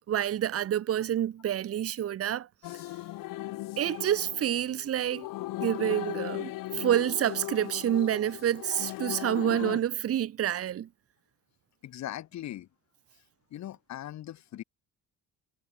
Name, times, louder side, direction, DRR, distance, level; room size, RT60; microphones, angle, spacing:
voice 1, 0.1-2.5 3.8-5.3 5.6-10.9, right 11 dB, 45° right, 2.3 m, -28 dB
sound 1, 2.6-9.8, left 17 dB, 85° left, 5.8 m, -38 dB
voice 2, 11.8-12.7 13.5-14.6, left 12 dB, 60° left, 6.2 m, -39 dB
cardioid pair, 165°, 32 cm